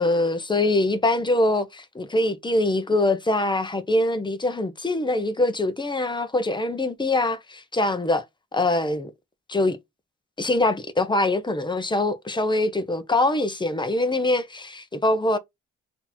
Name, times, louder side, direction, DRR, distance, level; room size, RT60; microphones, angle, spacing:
voice 1, 0.0-8.2 8.5-9.1 9.5-9.8 10.4-15.4, left 2 dB, 15° left, 0.8 m, -23 dB
3.9 x 2.9 x 4.2 m
cardioid pair, 90°, 30 cm